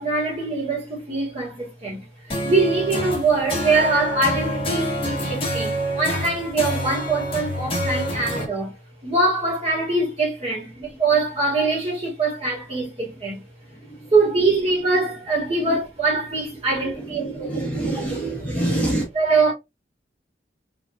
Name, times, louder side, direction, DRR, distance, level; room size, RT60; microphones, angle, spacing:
voice 1, 0.0-8.8 9.0-13.4 14.1-17.5 19.1-19.5, right 3 dB, 35° right, 2.4 m, -23 dB
sound 1, 2.3-8.4, equal, 30° left, 1.3 m, -27 dB
voice 2, 13.7-14.1 15.6-15.8 16.9-19.0, right 1 dB, 10° left, 1.4 m, -27 dB
4.9 x 3.4 x 2.6 m
head